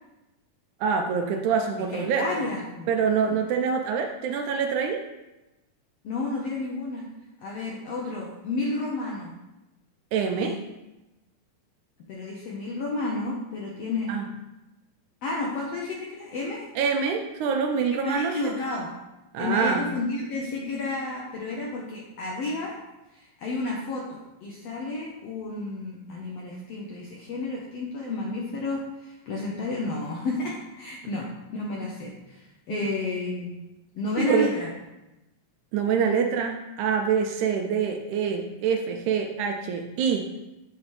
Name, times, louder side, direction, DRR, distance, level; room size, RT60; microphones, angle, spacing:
voice 1, 0.8-2.4 2.9-5.0 10.1-10.6 14.1-14.3 16.8-18.5 19.3-19.9 32.7-32.8 34.2-34.5 35.7-40.3, right 6 dB, 80° right, 4 dB, 1.8 m, -25 dB
voice 2, 1.9-2.9 3.3-3.4 6.0-7.1 7.4-9.3 10.4-10.5 12.1-14.1 15.2-16.6 17.9-18.9 19.4-22.7 23.1-33.6 33.9-34.7, left 2 dB, 75° left, -2 dB, 1.5 m, -31 dB
7.9 x 5.5 x 3.2 m, 1.0 s
omnidirectional pair, 3.7 m